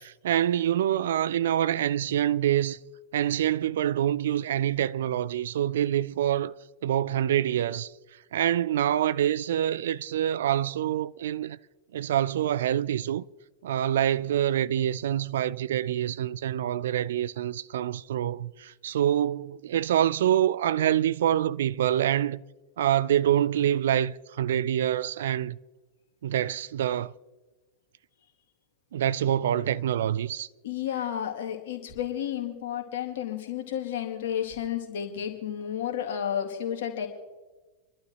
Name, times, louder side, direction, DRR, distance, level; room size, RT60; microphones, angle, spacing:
voice 1, 0.0-2.8 3.1-6.5 6.8-7.9 8.3-11.6 11.9-13.3 13.6-22.4 22.8-25.6 26.2-27.1 28.9-30.5, right 11 dB, 60° right, 0.4 m, -26 dB
voice 2, 30.6-37.1, left 9 dB, 55° left, 2.3 m, -32 dB
29.5 x 12.0 x 3.1 m
figure-of-eight pair, 90°, 0 cm